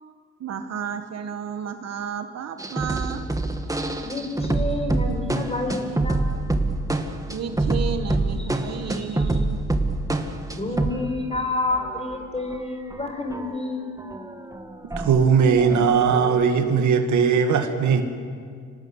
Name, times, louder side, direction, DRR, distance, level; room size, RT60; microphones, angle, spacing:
voice 1, 0.4-3.3 7.3-9.6, right 7 dB, 55° right, 7 dB, 1.5 m, -32 dB
sound 1, 2.6-11.1 11.3-11.4 11.7-13.7 14.0-16.5, right 2 dB, 10° right, 2.0 m, -27 dB
voice 2, 4.0-6.2 10.5-13.8, left 2 dB, 20° left, 5 dB, 4.9 m, -29 dB
voice 3, 14.9-18.0, right 6 dB, 70° right, 6 dB, 2.3 m, -19 dB
26.5 x 18.5 x 8.1 m, 2.1 s
cardioid pair, 90°, 30 cm